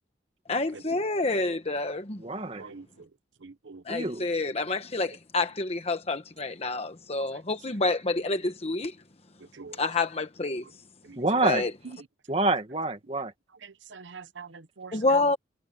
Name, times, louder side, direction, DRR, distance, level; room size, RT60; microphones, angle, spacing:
voice 1, 0.5-2.2 3.9-8.9 9.8-10.6 11.4-11.7 14.9-15.4, left 3 dB, 35° left, 1.1 m, -28 dB
voice 2, 2.2-2.6 3.9-4.3 11.2-11.6 12.3-13.3, right 2 dB, 30° right, 1.8 m, -27 dB
voice 3, 3.4-3.8 9.5-9.8 11.0-11.2 11.8-12.0 13.6-15.3, right 5 dB, 80° right, 0.9 m, -43 dB
head